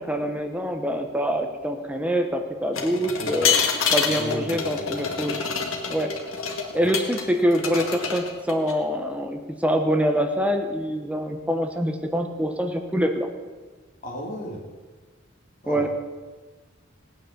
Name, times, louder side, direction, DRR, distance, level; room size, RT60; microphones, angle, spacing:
voice 1, 0.0-3.6 3.9-5.5 5.9-6.1 6.7-13.3 15.7-15.9, equal, 5° right, 5 dB, 1.2 m, -25 dB
sound 1, 2.7-7.2 7.5-8.7, left 6 dB, 85° left, 2.0 m, -26 dB
voice 2, 3.2-3.5 4.1-5.1 6.8-6.9 14.0-14.6 15.6-15.9, equal, 40° left, -2 dB, 3.7 m, -35 dB
17.5 x 9.4 x 7.0 m, 1.3 s
head